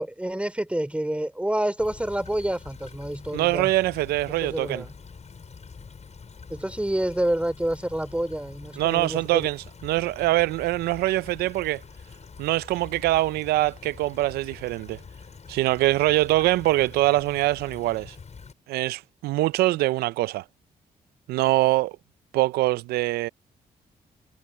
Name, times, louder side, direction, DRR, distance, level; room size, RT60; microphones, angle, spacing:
voice 1, 0.0-3.7 4.4-4.9 6.5-9.5, right 1 dB, 5° right, 3.6 m, -28 dB
Stream / Trickle dribble, 1.8-18.5, left 5 dB, 45° left, 7.3 m, -45 dB
voice 2, 3.3-4.8 8.8-11.8 12.4-15.0 15.5-18.2 18.7-20.4 21.3-21.9 22.3-23.3, right 17 dB, 90° right, 0.5 m, -23 dB
supercardioid pair, 60°, 16 cm